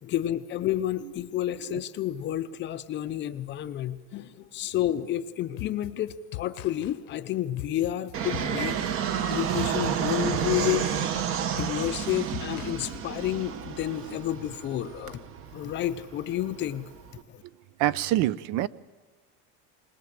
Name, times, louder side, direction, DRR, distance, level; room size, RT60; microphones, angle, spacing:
voice 1, 0.0-8.8 9.3-10.9 11.6-15.2 15.5-16.9 17.3-17.4, left 12 dB, 30° left, 12 dB, 0.6 m, -30 dB
sound 1, 5.6-13.4, left 17 dB, 60° left, 0.9 m, -41 dB
Fixed-wing aircraft airplane, 8.1-17.2, right 8 dB, 40° right, 1.0 m, -31 dB
voice 2, 17.8-18.7, right 14 dB, 55° right, 19 dB, 0.6 m, -25 dB
21.5 x 20.0 x 7.6 m, 1.4 s
cardioid pair, 170°, 35 cm